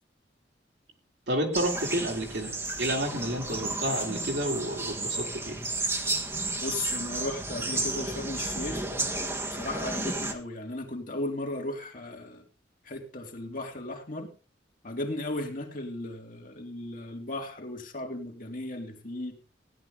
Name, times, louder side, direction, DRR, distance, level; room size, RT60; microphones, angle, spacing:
voice 1, 1.3-5.6, right 1 dB, 70° right, 1 dB, 3.2 m, -30 dB
sound 1, 1.5-10.3, right 2 dB, 15° right, 1.5 m, -32 dB
voice 2, 6.6-8.9 9.5-12.4 12.8-14.3 14.8-19.4, left 2 dB, 50° left, 2 dB, 2.5 m, -36 dB
16.5 x 10.5 x 3.8 m, 0.33 s
head